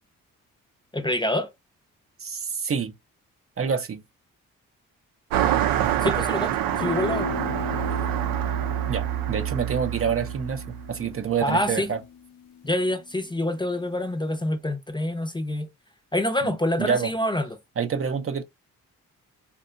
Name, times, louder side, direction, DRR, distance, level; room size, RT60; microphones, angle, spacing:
voice 1, 0.9-1.5 6.0-7.3 11.4-11.9 12.6-15.7 16.1-17.5, left 1 dB, 15° left, 0.6 m, -26 dB
voice 2, 2.2-2.9 3.6-4.0 8.9-12.0 16.4-17.1 17.8-18.4, right 6 dB, 40° right, 0.6 m, -27 dB
Car passing by, 5.3-11.1, right 12 dB, 85° right, 0.6 m, -26 dB
sound 1, 6.7-13.3, left 7 dB, 75° left, 0.6 m, -37 dB
2.7 x 2.3 x 2.5 m
supercardioid pair, 60°, 34 cm